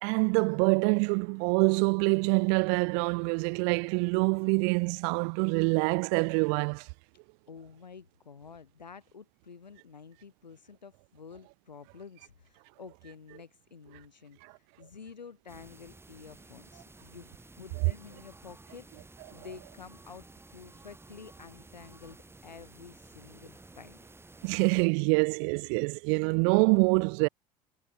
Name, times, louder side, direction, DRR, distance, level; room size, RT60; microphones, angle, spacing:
voice 1, 0.0-6.8 24.4-27.3, right 40 dB or more, 60° right, 0.8 m, -25 dB
voice 2, 7.5-24.0, left 6 dB, 90° left, 3.3 m, -50 dB
sound 1, 15.5-24.9, right 2 dB, 10° right, 3.4 m, -53 dB
hypercardioid pair, 75°, 21 cm